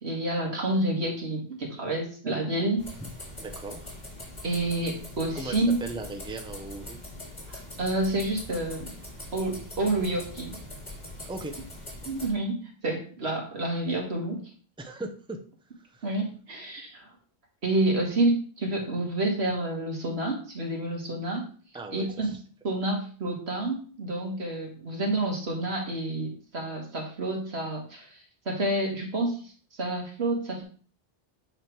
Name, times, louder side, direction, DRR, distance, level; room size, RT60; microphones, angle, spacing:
voice 1, 0.0-2.8 4.4-5.8 7.5-8.9 9.3-10.6 12.1-12.6 12.8-14.4 16.0-17.1 17.6-21.4 21.9-22.3 22.6-28.1 28.5-29.4 29.8-30.6, right 2 dB, 90° right, 0 dB, 2.0 m, -29 dB
sound 1, 2.8-12.3, left 1 dB, 45° left, 2.5 m, -42 dB
voice 2, 3.4-3.9 5.3-7.0 11.3-11.5 14.8-15.4 15.9-16.1 21.7-22.4, right 2 dB, 5° right, 3 dB, 0.7 m, -38 dB
8.8 x 3.3 x 4.6 m, 0.42 s
omnidirectional pair, 1.1 m